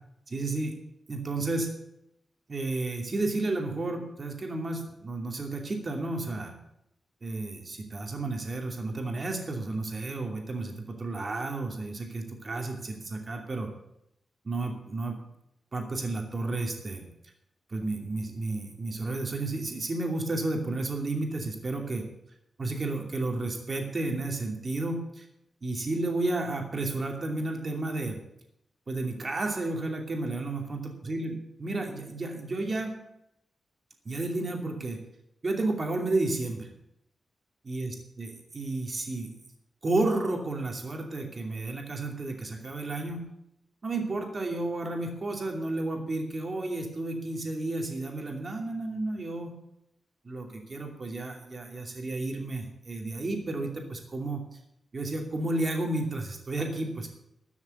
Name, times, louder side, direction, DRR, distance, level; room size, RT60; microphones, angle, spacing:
voice 1, 0.3-0.8 1.1-1.7 2.5-6.5 7.2-13.7 14.4-15.2 15.7-17.0 17.7-22.0 22.6-25.2 25.6-28.2 28.9-32.9 34.0-35.0 35.4-36.7 37.6-39.3 39.8-43.2 43.8-49.5 50.2-54.4 54.9-57.1, right 2 dB, 35° right, 3 dB, 2.6 m, -32 dB
13.5 x 7.2 x 9.1 m, 0.80 s
wide cardioid pair, 155°, 0 cm